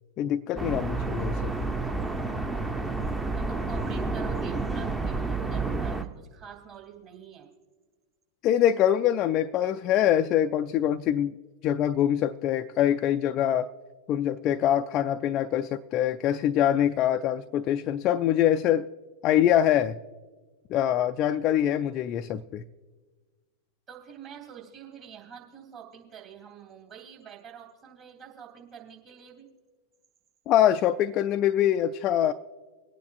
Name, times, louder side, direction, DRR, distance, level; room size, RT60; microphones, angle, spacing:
voice 1, 0.2-1.5 8.4-11.4 11.6-13.7 14.1-18.9 19.2-20.0 20.7-22.6 30.5-32.3, left 11 dB, 35° left, 0.3 m, -24 dB
sound 1, 0.6-6.0, right 3 dB, 5° right, 0.7 m, -30 dB
voice 2, 3.3-7.5 23.9-29.5, right 8 dB, 35° right, 2.8 m, -46 dB
25.0 x 9.3 x 2.5 m
figure-of-eight pair, 90°, 0 cm